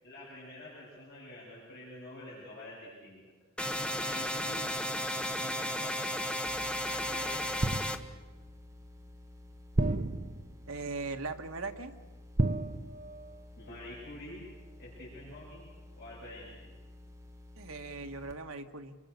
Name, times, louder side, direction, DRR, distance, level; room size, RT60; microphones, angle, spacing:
voice 1, 0.0-3.2 3.9-4.7 5.1-6.2 6.9-7.8 13.6-14.4 14.8-15.7 16.0-16.7, left 1 dB, 45° left, -5 dB, 7.9 m, -47 dB
sound 1, 3.6-8.0, equal, 5° left, 1.1 m, -34 dB
sound 2, 6.5-18.3, left 1 dB, 10° right, 1.4 m, -52 dB
sound 3, 7.6-8.4 9.7-10.7 12.4-13.5 13.7-14.0, right 2 dB, 40° right, 0.8 m, -32 dB
voice 2, 10.7-11.9 17.6-19.0, right 3 dB, 65° right, 6 dB, 1.7 m, -39 dB
29.0 x 24.0 x 6.8 m, 1.3 s
head